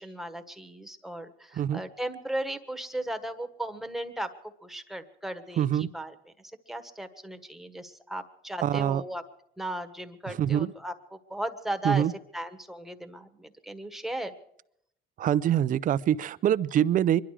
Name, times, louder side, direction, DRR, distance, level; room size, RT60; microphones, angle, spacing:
voice 1, 0.0-4.3 4.6-6.1 6.7-9.2 9.6-12.0 12.3-14.3, right 1 dB, ahead, 7 dB, 1.4 m, -36 dB
voice 2, 5.6-5.9 8.6-9.0 10.3-10.7 11.8-12.1 15.2-17.2, right 10 dB, 50° right, 16 dB, 0.6 m, -25 dB
24.5 x 11.5 x 4.9 m, 0.74 s
cardioid pair, 110°, 17 cm